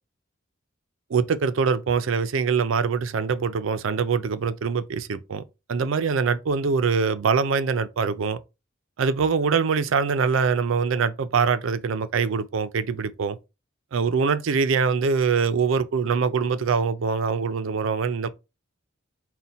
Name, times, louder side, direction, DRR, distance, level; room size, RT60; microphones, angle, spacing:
voice 1, 1.1-5.4 5.7-8.4 9.0-13.4 13.9-18.3, right 5 dB, 75° right, 0.4 m, -23 dB
4.1 x 2.2 x 4.0 m
head